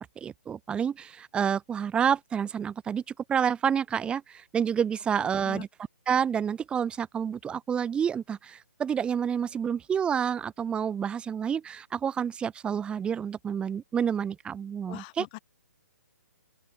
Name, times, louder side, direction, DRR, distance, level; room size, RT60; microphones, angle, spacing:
voice 1, 0.2-3.0 3.3-5.7 6.1-15.3, right 7 dB, 10° right, 1.1 m, -29 dB
voice 2, 14.9-15.4, left 27 dB, 30° left, 3.0 m, -41 dB
open air
hypercardioid pair, 140°, 9 cm